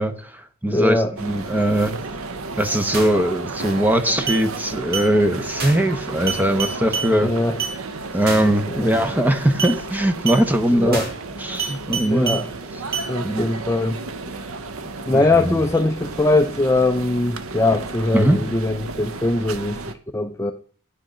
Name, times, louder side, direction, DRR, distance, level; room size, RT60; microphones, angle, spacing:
voice 1, 0.0-2.0 2.6-7.3 8.1-11.0 11.4-12.4 13.2-13.5 15.1-15.6 18.1-18.4, right 1 dB, 10° right, 8 dB, 0.7 m, -20 dB
voice 2, 0.7-1.1 7.2-7.6 8.7-8.9 10.7-11.1 11.5-11.6 12.1-12.5 13.1-14.0 14.3-14.4 15.1-19.8 20.1-20.5, left 2 dB, 15° left, 6 dB, 0.4 m, -21 dB
sound 1, 1.2-19.9, right 3 dB, 85° right, 0.8 m, -33 dB
sound 2, 2.9-3.2 3.6-3.9 4.3-4.4 4.9-5.1 5.6-5.9 6.3-7.1 7.6-7.8 8.3-8.6 8.9-9.2 9.6-9.8 10.3-10.4 10.9-11.2 11.6-12.4 12.9-13.1, right 5 dB, 45° right, 1.6 m, -27 dB
10.0 x 6.3 x 5.0 m, 0.42 s
head